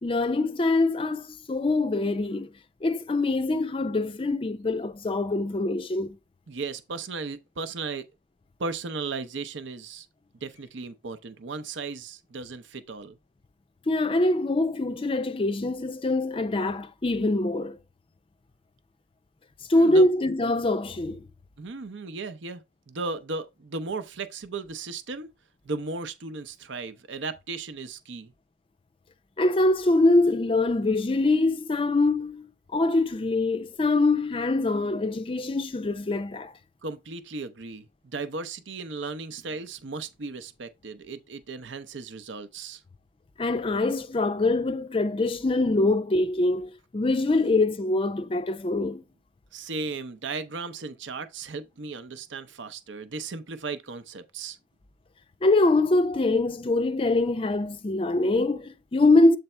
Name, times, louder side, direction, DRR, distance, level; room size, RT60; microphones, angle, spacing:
voice 1, 0.0-2.5 2.8-6.2 13.9-17.8 19.7-21.3 29.4-36.5 43.4-49.0 55.4-59.4, left 2 dB, 30° left, 0.4 m, -24 dB
voice 2, 6.5-8.0 8.6-10.1 10.4-13.2 19.7-20.1 21.6-25.3 25.6-28.3 36.8-37.9 38.1-42.8 49.5-54.6, right 3 dB, 75° right, 0.7 m, -36 dB
8.0 x 3.4 x 4.3 m
head